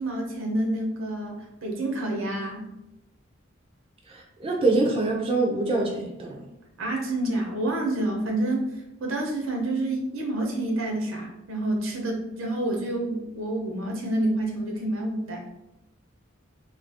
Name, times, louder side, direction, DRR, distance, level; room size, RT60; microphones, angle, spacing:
voice 1, 0.0-2.7 6.8-8.7 9.0-15.4, right 1 dB, 80° right, 1 dB, 0.8 m, -28 dB
voice 2, 4.1-6.5, right 2 dB, 30° right, -1 dB, 0.3 m, -25 dB
2.7 x 2.5 x 3.4 m, 0.87 s
head